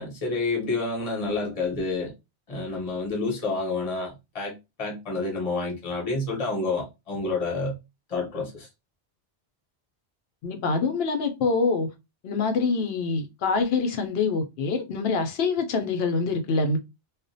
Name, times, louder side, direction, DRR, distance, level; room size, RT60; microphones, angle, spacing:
voice 1, 0.0-2.1 2.5-7.8 8.1-8.7, left 3 dB, 35° left, 0.8 m, -29 dB
voice 2, 10.4-11.9 12.2-16.8, left 4 dB, 65° left, 0.8 m, -25 dB
2.4 x 2.1 x 2.5 m
omnidirectional pair, 1.1 m